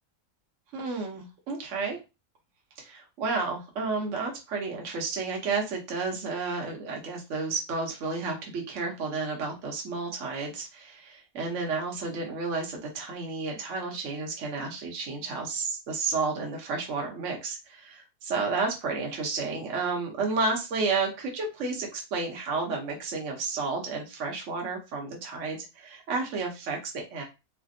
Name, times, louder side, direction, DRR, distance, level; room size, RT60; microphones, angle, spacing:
voice 1, 0.7-2.0 2.8-27.2, right 4 dB, 60° right, 0 dB, 1.0 m, -31 dB
3.3 x 2.1 x 2.5 m, 0.26 s
omnidirectional pair, 1.6 m